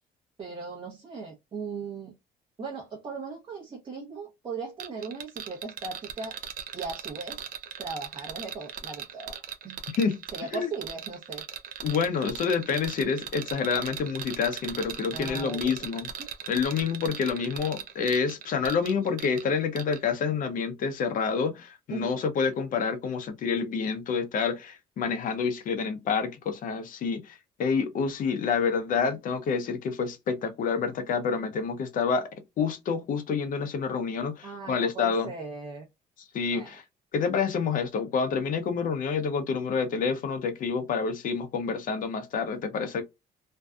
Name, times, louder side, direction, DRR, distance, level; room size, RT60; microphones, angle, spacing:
voice 1, 0.4-2.1 2.6-6.4 6.7-7.4 7.8-9.4 9.6-9.8 10.3-11.4 15.1-15.7 21.9-22.2 34.4-35.9 36.5-36.8, right 4 dB, 30° right, 0.8 m, -38 dB
sound 1, 4.8-19.5 19.8-20.0, right 8 dB, 55° right, 0.5 m, -38 dB
voice 2, 11.8-16.1 16.5-32.3 32.6-35.3 36.3-36.8 37.1-43.0, left 5 dB, 55° left, 0.6 m, -28 dB
2.6 x 2.2 x 2.3 m
cardioid pair, 110°, 17 cm